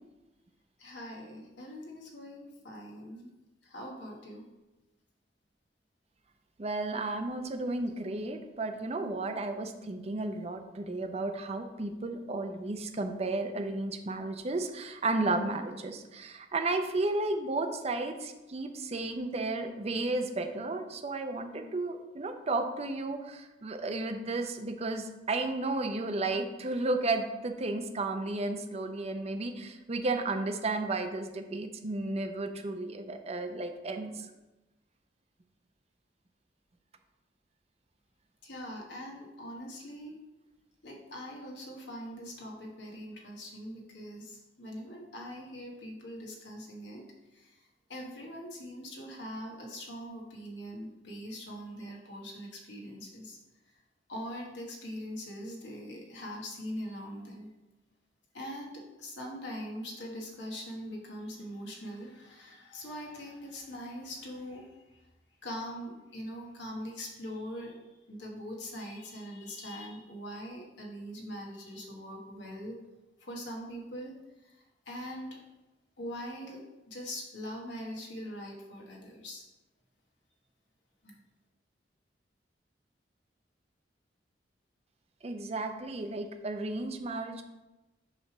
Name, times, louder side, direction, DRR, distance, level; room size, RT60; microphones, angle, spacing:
voice 1, 0.8-3.3 3.6-4.5 38.4-40.2 40.8-47.1 47.3-47.6 47.9-53.4 54.1-57.5 58.3-64.8 65.4-67.8 68.1-72.8 73.2-74.2 74.4-75.4 76.0-79.4 81.0-81.2, equal, 75° left, -1 dB, 1.4 m, -42 dB
voice 2, 6.6-34.2 85.2-87.4, right 2 dB, 35° right, 6 dB, 0.6 m, -33 dB
6.5 x 3.3 x 5.9 m, 1.1 s
head